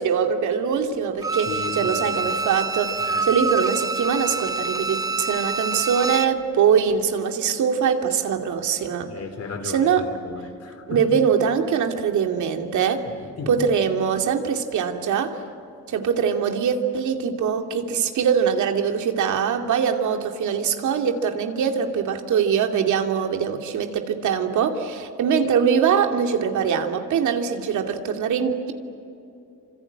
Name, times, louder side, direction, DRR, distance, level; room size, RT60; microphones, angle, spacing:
voice 1, 0.0-1.5 1.8-9.1 9.7-10.0 10.9-13.0 13.5-15.4 15.9-28.7, right 7 dB, 75° right, 5 dB, 2.5 m, -22 dB
Bowed string instrument, 1.2-6.4 6.8-6.9, right 3 dB, 10° right, 0.9 m, -26 dB
voice 2, 1.5-2.4 3.0-3.3 9.1-9.9 10.2-11.1 13.1-13.6, left 4 dB, 55° left, 7 dB, 3.7 m, -35 dB
26.5 x 26.0 x 8.7 m, 2.7 s
cardioid pair, 90°, 30 cm